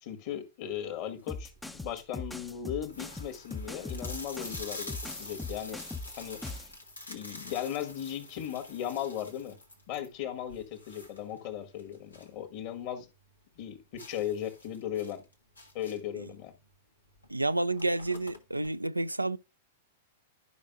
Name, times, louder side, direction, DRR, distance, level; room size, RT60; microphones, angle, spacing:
voice 1, 0.0-5.8 6.2-6.6 7.1-9.6 9.9-13.1 13.6-15.2 15.7-16.5, left 10 dB, 45° left, 1.7 m, -37 dB
sound 1, 1.2-1.5 2.1-2.2 2.4-2.5 2.8-12.4 12.7-12.8 13.2-13.3 14.0-16.2 17.2-17.3 17.6-18.7, left 2 dB, 85° left, 1.6 m, -46 dB
sound 2, 1.3-6.7, left 2 dB, 5° left, 0.6 m, -40 dB
voice 2, 17.3-19.4, right 2 dB, 85° right, 0.4 m, -30 dB
12.0 x 5.3 x 2.4 m
figure-of-eight pair, 100°, 0 cm